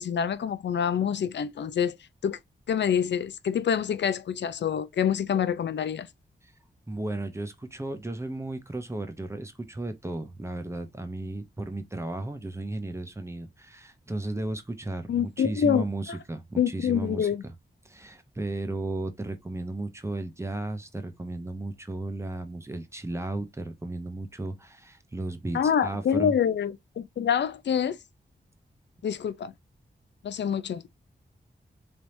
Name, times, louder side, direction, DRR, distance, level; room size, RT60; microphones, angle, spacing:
voice 1, 0.0-2.0 2.2-2.4 2.7-6.1 15.1-15.8 16.6-17.4 25.5-28.0 29.0-29.5 30.2-30.8, left 8 dB, 80° left, 0.5 m, -26 dB
voice 2, 6.9-17.5 17.8-26.3, right 2 dB, 15° right, 0.7 m, -34 dB
4.4 x 3.4 x 2.6 m
wide cardioid pair, 180°, 18 cm